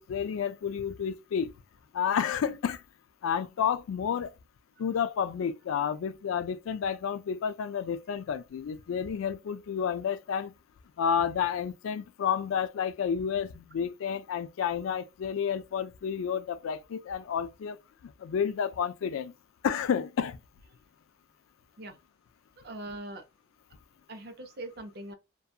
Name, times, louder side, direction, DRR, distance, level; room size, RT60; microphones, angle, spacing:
voice 1, 0.0-1.5 1.9-2.8 3.2-4.3 4.8-10.5 11.0-17.8 18.0-19.3 19.6-20.4, left 7 dB, 90° left, 0.3 m, -30 dB
voice 2, 22.6-23.2 24.1-25.1, right 1 dB, 50° right, 0.6 m, -41 dB
2.6 x 2.3 x 2.3 m
head